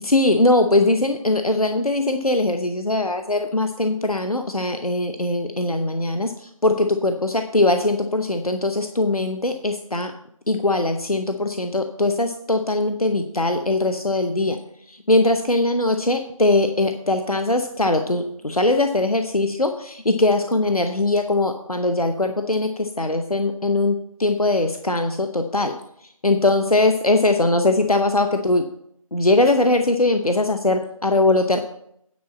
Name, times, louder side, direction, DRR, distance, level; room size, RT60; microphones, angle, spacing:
voice 1, 0.0-10.1 10.5-14.6 14.9-25.7 26.2-28.6 29.1-31.6, left 2 dB, 90° left, 6 dB, 0.8 m, -21 dB
9.5 x 4.2 x 7.3 m, 0.71 s
figure-of-eight pair, 165°, 18 cm